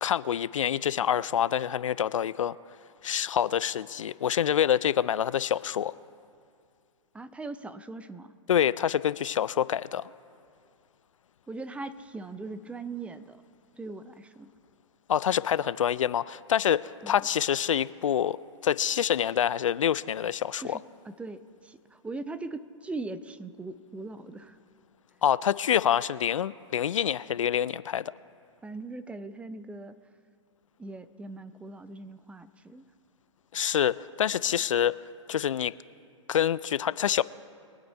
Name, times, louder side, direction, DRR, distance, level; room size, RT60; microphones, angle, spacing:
voice 1, 0.0-2.6 3.0-5.9 8.5-10.1 15.1-18.4 18.6-20.8 25.2-28.1 33.5-35.0 35.3-35.7 36.3-37.2, left 9 dB, 80° left, 18 dB, 0.4 m, -26 dB
voice 2, 7.1-8.3 11.5-13.4 13.8-14.5 17.0-17.3 20.6-24.6 28.6-30.0 30.8-32.8, right 3 dB, 5° right, 13 dB, 0.4 m, -40 dB
23.0 x 8.6 x 4.5 m, 2.4 s
hypercardioid pair, 115°, 16 cm